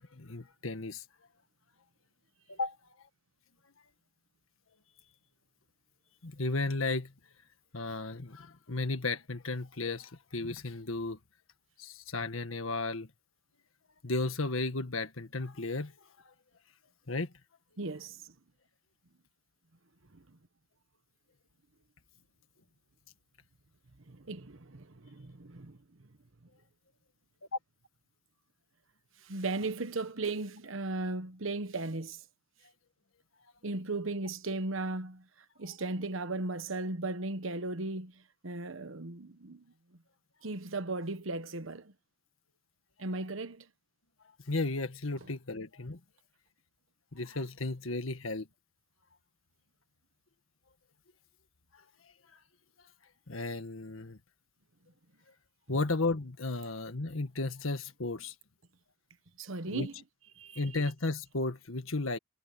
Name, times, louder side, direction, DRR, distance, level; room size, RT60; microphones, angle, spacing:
voice 1, 0.1-1.0 2.5-2.8 6.2-7.1 7.7-11.2 11.8-13.1 14.0-15.9 17.1-17.3 44.5-46.0 47.1-48.5 53.3-54.2 55.7-58.3 59.7-59.9 60.5-62.2, left 3 dB, 80° left, 1.7 m, -34 dB
voice 2, 17.8-18.2 24.1-25.8 29.2-32.2 33.6-35.2 35.6-39.6 40.4-41.9 43.0-43.7 59.4-59.9 60.4-60.6, right 2 dB, 70° right, 1.2 m, -36 dB
head